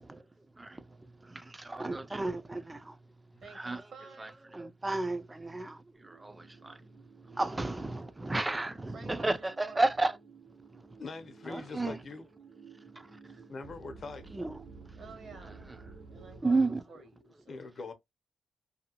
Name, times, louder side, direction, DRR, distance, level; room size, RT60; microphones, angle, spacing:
voice 1, 1.5-2.9 3.5-3.8 4.5-5.8 6.1-6.7 7.3-10.1 11.5-12.0 14.3-14.5 16.4-16.8, right 2 dB, 20° right, 0.4 m, -32 dB
voice 2, 3.4-4.5 8.9-9.8 13.3-13.4 15.0-15.5 16.1-17.7, right 4 dB, 65° right, 1.2 m, -51 dB
sound 1, 5.9-16.4, right 4 dB, 85° right, 1.3 m, -54 dB
voice 3, 11.0-12.3 13.5-14.3 17.5-17.9, left 4 dB, 55° left, 0.7 m, -42 dB
2.7 x 2.4 x 2.7 m
cardioid pair, 60°, 0 cm